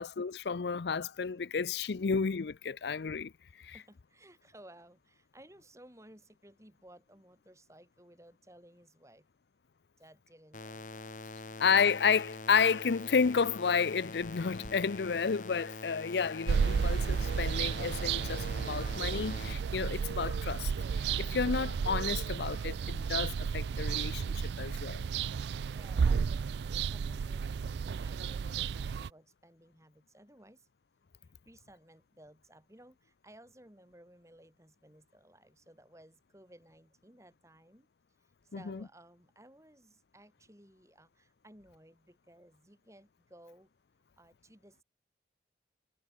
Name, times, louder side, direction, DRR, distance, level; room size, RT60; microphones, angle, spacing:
voice 1, 0.0-3.3 3.6-3.7 11.6-20.7 21.2-25.0 38.5-38.8, left 6 dB, 75° left, 0.5 m, -31 dB
voice 2, 3.7-9.3 10.0-11.3 25.7-30.7 31.2-37.9 38.2-43.7 44.2-44.8, right 1 dB, 15° right, 7.3 m, -58 dB
sound 1, 10.5-19.5, left 2 dB, 45° left, 1.9 m, -45 dB
sound 2, 13.9-23.3, equal, ahead, 3.0 m, -58 dB
sound 3, 16.5-29.1, right 6 dB, 75° right, 0.4 m, -32 dB
head